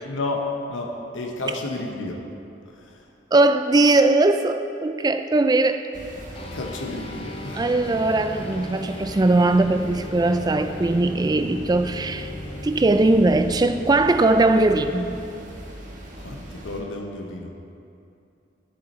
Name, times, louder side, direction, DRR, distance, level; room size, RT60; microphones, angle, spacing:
voice 1, 0.0-2.2 2.7-3.0 6.5-7.8 16.2-17.5, left 2 dB, 85° left, 1 dB, 1.0 m, -31 dB
voice 2, 3.3-5.8 7.5-12.3 12.6-15.2, right 2 dB, 20° right, 9 dB, 0.3 m, -20 dB
sound 1, 5.9-16.8, right 1 dB, 45° right, 1.2 m, -40 dB
sound 2, 6.3-16.1, left 2 dB, 30° left, 0.5 m, -39 dB
12.0 x 7.6 x 4.3 m, 2.7 s
head